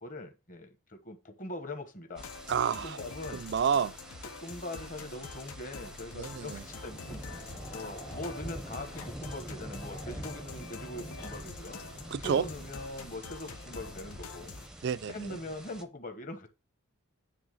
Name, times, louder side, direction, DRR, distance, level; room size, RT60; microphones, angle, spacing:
voice 1, 0.0-2.3 2.8-3.4 4.4-11.8 12.2-14.5 15.1-16.5, left 1 dB, 35° left, 1.2 m, -42 dB
Growling, 1.5-3.3 3.6-4.2 4.5-4.6 5.7-8.5 8.9-9.2 9.5-10.2 10.9-11.3 12.2-12.6 13.4-13.7 14.8-15.5, left 1 dB, 65° left, 2.1 m, -54 dB
sound 1, 2.2-14.7, left 4 dB, 80° left, 0.8 m, -46 dB
sound 2, 2.2-15.8, right 1 dB, 5° right, 0.6 m, -46 dB
voice 2, 2.5-3.0 3.3-3.9 6.2-6.6 12.1-12.4 14.8-15.1, right 7 dB, 50° right, 0.3 m, -29 dB
8.9 x 3.4 x 6.5 m
head